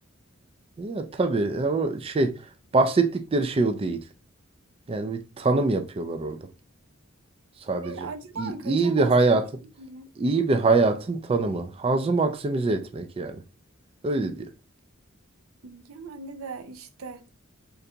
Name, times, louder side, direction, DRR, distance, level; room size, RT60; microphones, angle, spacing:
voice 1, 0.8-2.3 2.7-4.0 4.9-6.4 7.7-8.1 8.4-9.5 10.2-13.4 14.0-14.5, right 3 dB, 30° right, 0.3 m, -24 dB
voice 2, 7.8-9.4 9.8-10.1 15.6-17.3, right 4 dB, 90° right, 0.6 m, -39 dB
3.9 x 3.3 x 2.7 m
head